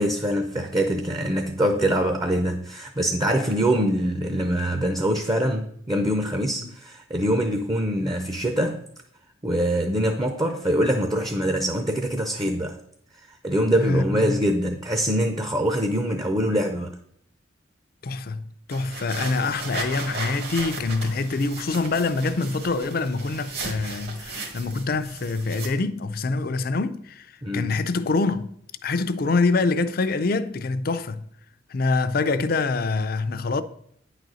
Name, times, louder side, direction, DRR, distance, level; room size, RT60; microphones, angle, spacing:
voice 1, 0.0-8.8 9.4-12.8 13.3-16.9 27.4-27.7, right 1 dB, 20° right, 0.6 m, -24 dB
voice 2, 13.8-14.4 18.0-27.3 27.5-28.6 28.8-31.2 31.7-33.6, left 3 dB, 50° left, 0.5 m, -25 dB
sound 1, 18.7-25.7, right 3 dB, 60° right, 1.6 m, -36 dB
9.3 x 4.0 x 6.2 m
head